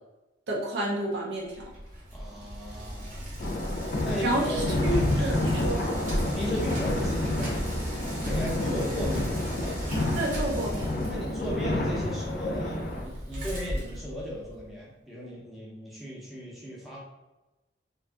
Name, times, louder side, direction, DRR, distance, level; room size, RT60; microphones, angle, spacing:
voice 1, 0.5-1.5 4.2-5.8 10.2-10.9, right 1 dB, 75° right, -3 dB, 0.5 m, -30 dB
Bicycle, 1.5-14.7, equal, 45° right, 0.7 m, -35 dB
voice 2, 2.1-3.6 4.0-5.2 6.2-9.7 11.1-17.0, equal, ahead, -7 dB, 0.6 m, -36 dB
sound 1, 3.4-13.0, left 1 dB, 50° left, 0.4 m, -29 dB
2.6 x 2.5 x 2.3 m, 1.0 s
head